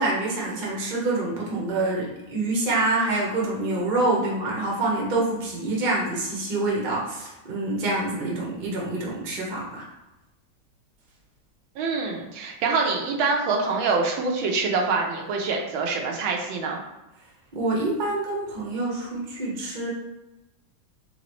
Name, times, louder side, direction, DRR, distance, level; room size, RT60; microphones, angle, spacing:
voice 1, 0.0-9.8 17.5-19.9, right 2 dB, 35° right, -4 dB, 0.9 m, -26 dB
voice 2, 11.8-16.8, right 4 dB, 80° right, 0 dB, 1.5 m, -25 dB
4.0 x 3.4 x 3.1 m, 0.97 s
omnidirectional pair, 2.2 m